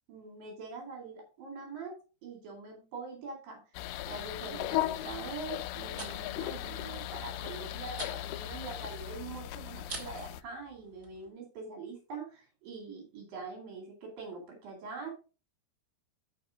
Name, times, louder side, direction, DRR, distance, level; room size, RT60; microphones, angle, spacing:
voice 1, 0.1-3.6 4.1-15.1, right 4 dB, 65° right, 1 dB, 4.2 m, -43 dB
sound 1, 3.7-10.4, left 15 dB, 80° left, 2.4 m, -37 dB
sound 2, 5.5-11.3, right 3 dB, 35° right, 1.8 m, -49 dB
12.0 x 5.2 x 3.7 m, 0.33 s
omnidirectional pair, 4.5 m